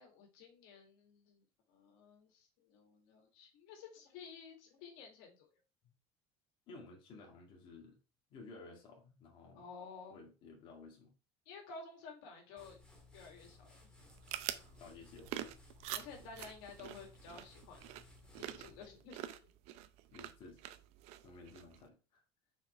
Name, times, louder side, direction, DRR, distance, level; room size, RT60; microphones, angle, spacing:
voice 1, 0.0-1.4 1.7-5.5 9.5-10.2 11.5-12.8 13.1-13.9 15.9-17.8 18.3-19.4, left 5 dB, 85° left, 2 dB, 2.4 m, -53 dB
voice 2, 6.7-8.0 8.3-9.6 10.1-11.1 14.7-15.6 20.1-20.6 21.2-22.2, left 3 dB, 45° left, 0 dB, 1.9 m, -55 dB
sound 1, 12.6-19.1, left 3 dB, 5° left, 1.9 m, -61 dB
sound 2, 14.0-21.9, right 13 dB, 65° right, 0.6 m, -47 dB
5.7 x 4.5 x 4.6 m, 0.33 s
cardioid pair, 150°, 12 cm